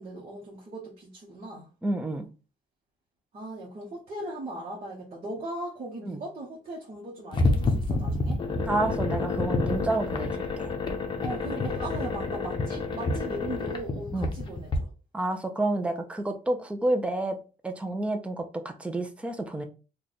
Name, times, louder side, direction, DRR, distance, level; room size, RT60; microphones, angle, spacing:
voice 1, 0.0-1.7 3.3-8.4 11.2-14.9, right 1 dB, 45° right, 1.0 m, -38 dB
voice 2, 1.8-2.3 6.0-6.2 8.7-10.7 14.1-14.4 15.1-17.4 17.6-19.6, right 2 dB, 10° right, 0.5 m, -29 dB
sound 1, 7.3-14.8, left 3 dB, 30° left, 0.7 m, -28 dB
3.2 x 2.3 x 4.0 m
cardioid pair, 120°, 15 cm